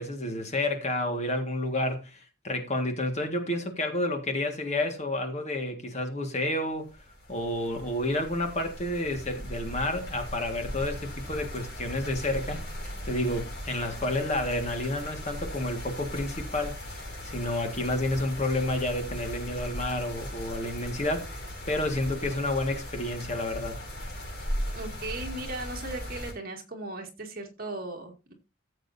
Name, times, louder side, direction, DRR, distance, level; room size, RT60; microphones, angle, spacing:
voice 1, 0.0-6.9 7.3-11.0 11.3-12.6 13.1-16.8 17.2-23.8, left 1 dB, 30° left, 1.8 m, -30 dB
sound 1, 6.8-26.3, equal, 50° left, 6.1 m, -38 dB
voice 2, 24.7-28.3, right 2 dB, 45° right, 2.3 m, -37 dB
15.0 x 7.7 x 2.7 m
head